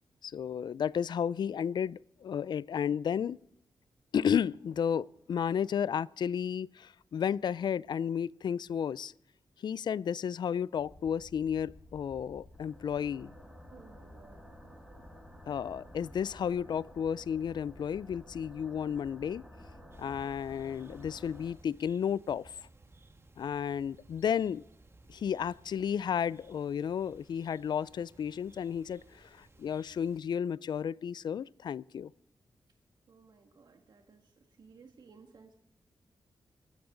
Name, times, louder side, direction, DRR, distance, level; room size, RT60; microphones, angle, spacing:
voice 1, 0.2-3.4 4.1-9.1 9.6-13.3 15.5-19.4 20.0-22.5 23.4-24.6 25.1-32.1, left 8 dB, 70° left, 0.4 m, -32 dB
sound 1, 10.8-21.5, equal, 5° right, 5.7 m, -52 dB
voice 2, 13.7-14.4 33.1-34.3 34.6-35.6, right 5 dB, 65° right, 1.9 m, -57 dB
sound 2, 19.9-30.2, right 2 dB, 35° right, 1.7 m, -60 dB
24.0 x 9.5 x 3.9 m
cardioid pair, 75°, 8 cm